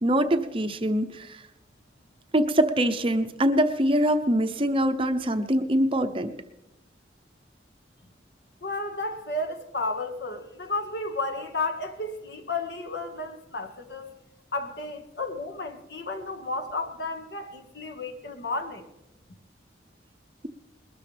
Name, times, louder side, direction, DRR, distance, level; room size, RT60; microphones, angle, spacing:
voice 1, 0.0-1.4 2.3-6.3, right 1 dB, 30° right, 8 dB, 0.7 m, -23 dB
voice 2, 8.6-14.1 14.5-18.9, left 2 dB, 65° left, 5 dB, 1.7 m, -32 dB
21.5 x 13.0 x 3.4 m, 0.91 s
head